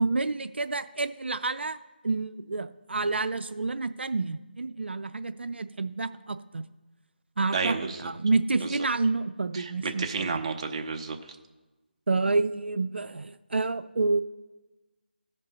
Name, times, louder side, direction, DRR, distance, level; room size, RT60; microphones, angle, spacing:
voice 1, 0.0-1.8 2.0-6.6 7.4-7.7 8.0-10.3 12.1-14.2, right 3 dB, 80° right, 11 dB, 0.4 m, -28 dB
voice 2, 7.5-8.1 8.5-8.7 9.5-11.2, right 4 dB, 30° right, 4 dB, 0.7 m, -31 dB
16.0 x 5.3 x 4.1 m, 1.2 s
figure-of-eight pair, 160°, 6 cm